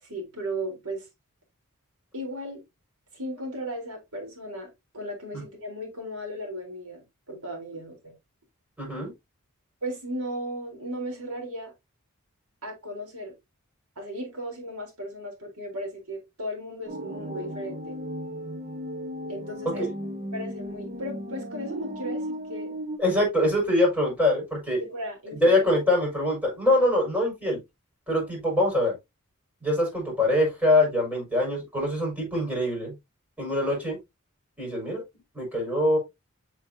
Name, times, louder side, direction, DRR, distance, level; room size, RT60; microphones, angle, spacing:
voice 1, 0.0-1.1 2.1-2.6 3.1-4.7 4.9-8.1 9.8-11.7 12.6-13.3 14.0-18.0 19.3-19.9 20.3-22.7 24.8-25.6, equal, 85° right, 4.1 m, -36 dB
voice 2, 8.8-9.1 19.8-19.9 23.0-24.8 25.4-27.6 28.1-28.9 29.6-32.9 33.4-34.0 34.6-35.0 35.3-36.0, left 1 dB, 10° right, 5.8 m, -24 dB
sound 1, 16.9-23.0, equal, 35° right, 1.2 m, -35 dB
8.2 x 6.4 x 2.8 m
head